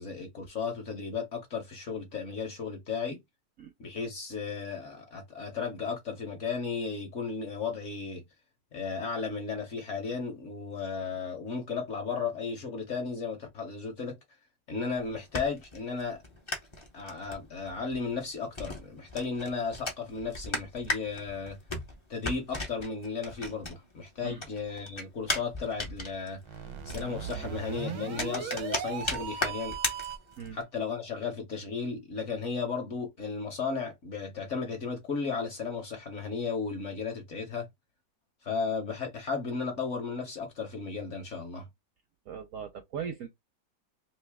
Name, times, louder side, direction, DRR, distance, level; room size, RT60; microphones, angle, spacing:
voice 1, 0.0-3.2 3.8-8.2 8.7-14.2 14.7-16.2 16.9-21.6 22.1-26.4 26.8-29.7 30.5-37.7 38.4-41.7, left 5 dB, 50° left, 1.0 m, -34 dB
sound 1, 14.9-24.1 24.4-30.6, left 2 dB, 35° left, 0.4 m, -37 dB
sound 2, 26.4-30.4, right 8 dB, 85° right, 1.4 m, -38 dB
voice 2, 42.3-43.3, right 7 dB, 70° right, 0.8 m, -38 dB
3.1 x 2.7 x 3.4 m
omnidirectional pair, 1.9 m